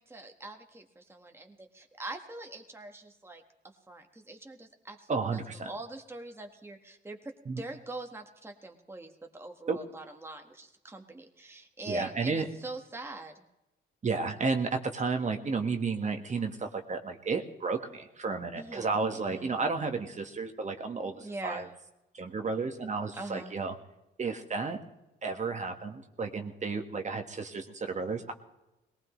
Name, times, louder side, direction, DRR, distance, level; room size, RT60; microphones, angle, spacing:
voice 1, 0.0-13.4 18.5-19.5 21.2-21.7 23.2-23.6, right 2 dB, 10° right, 3 dB, 1.5 m, -43 dB
voice 2, 5.1-5.7 7.5-7.6 9.7-9.8 11.9-12.4 14.0-21.7 22.1-23.7 24.2-24.8 25.2-28.3, right 4 dB, 35° right, 5 dB, 1.6 m, -32 dB
20.5 x 18.5 x 3.2 m, 0.94 s
cardioid pair, 90°, 20 cm